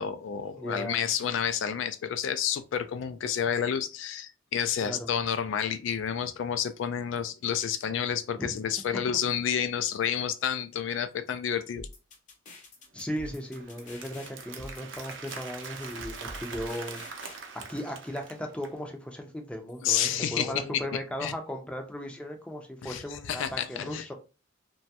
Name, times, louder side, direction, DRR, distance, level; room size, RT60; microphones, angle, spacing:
voice 1, 0.0-11.9 19.8-21.3 22.8-24.0, left 8 dB, 70° left, 0.3 m, -30 dB
voice 2, 0.5-1.1 4.8-5.1 12.9-24.1, equal, 5° left, 0.4 m, -37 dB
sound 1, 11.8-17.4, left 1 dB, 40° left, 0.7 m, -46 dB
Applause, 13.0-18.8, right 5 dB, 65° right, 0.6 m, -43 dB
3.0 x 2.2 x 2.8 m
head